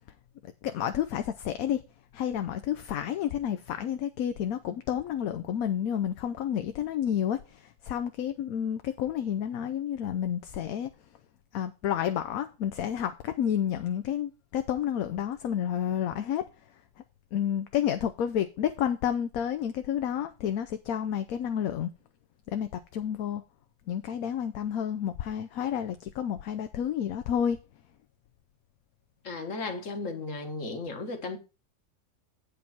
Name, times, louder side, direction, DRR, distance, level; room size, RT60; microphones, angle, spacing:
voice 1, 0.6-1.8 2.1-10.9 11.5-16.4 17.3-21.9 22.5-23.4 23.9-27.6, left 9 dB, 70° left, 1.1 m, -30 dB
voice 2, 29.2-31.4, left 3 dB, 55° left, 1.8 m, -35 dB
8.5 x 5.3 x 5.9 m
omnidirectional pair, 1.6 m